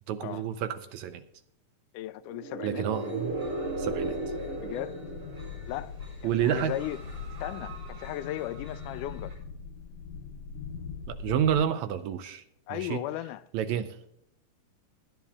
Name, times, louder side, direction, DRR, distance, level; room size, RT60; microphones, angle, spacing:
voice 1, 0.1-1.2 2.6-3.4 3.8-4.2 6.2-6.7 11.1-12.4 12.7-13.0 13.5-14.0, right 9 dB, 75° right, 1.9 m, -29 dB
voice 2, 1.9-2.9 4.6-5.0 5.7-7.0 7.4-9.4 12.7-13.5, left 14 dB, 80° left, 2.0 m, -36 dB
sound 1, 2.3-6.1, right 2 dB, 60° right, 3.1 m, -35 dB
sound 2, 2.9-9.4, right 2 dB, 40° right, 6.2 m, -49 dB
sound 3, 3.2-11.7, left 6 dB, 65° left, 2.0 m, -42 dB
19.5 x 11.0 x 2.4 m
omnidirectional pair, 3.7 m